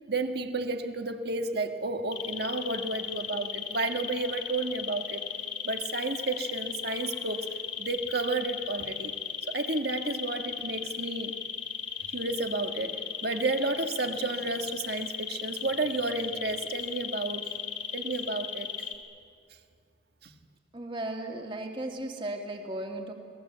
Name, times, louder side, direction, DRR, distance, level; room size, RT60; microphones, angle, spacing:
voice 1, 0.1-5.2 5.7-9.1 9.5-11.4 12.1-17.5 17.9-18.7 20.2-20.3, right 3 dB, 55° right, 6 dB, 1.6 m, -32 dB
sound 1, 2.1-18.9, left 9 dB, 85° left, 2.4 m, -36 dB
voice 2, 20.7-23.1, right 1 dB, 25° right, 2 dB, 2.3 m, -36 dB
29.0 x 20.5 x 8.1 m, 2.3 s
head